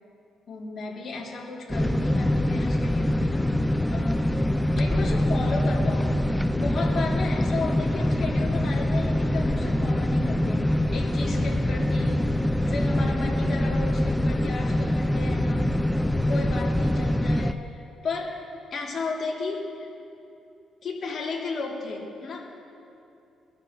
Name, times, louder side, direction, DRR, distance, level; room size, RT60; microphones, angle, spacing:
voice 1, 0.5-3.6 3.9-4.3 4.8-12.2 12.6-15.8 16.1-18.4 18.7-19.9 20.8-22.5, left 3 dB, 50° left, -3 dB, 2.9 m, -34 dB
sound 1, 1.7-17.5, left 1 dB, 5° left, 0.5 m, -24 dB
21.5 x 13.5 x 3.1 m, 2.7 s
cardioid pair, 90°, 0 cm